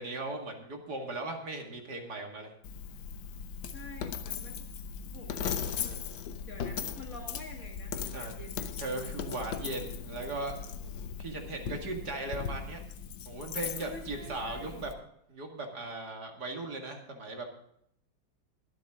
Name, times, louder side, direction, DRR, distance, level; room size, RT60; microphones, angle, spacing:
voice 1, 0.0-2.5 8.1-8.3 8.8-10.6 11.2-12.8 13.3-14.9 15.3-17.5, right 2 dB, 55° right, 2 dB, 2.6 m, -38 dB
Coin (dropping), 2.6-14.9, left 7 dB, 75° left, 1.6 m, -38 dB
voice 2, 3.6-4.6 5.1-6.0 6.4-8.7 13.8-14.9, left 2 dB, 45° left, 2 dB, 2.4 m, -48 dB
23.0 x 7.8 x 3.7 m, 0.71 s
omnidirectional pair, 2.1 m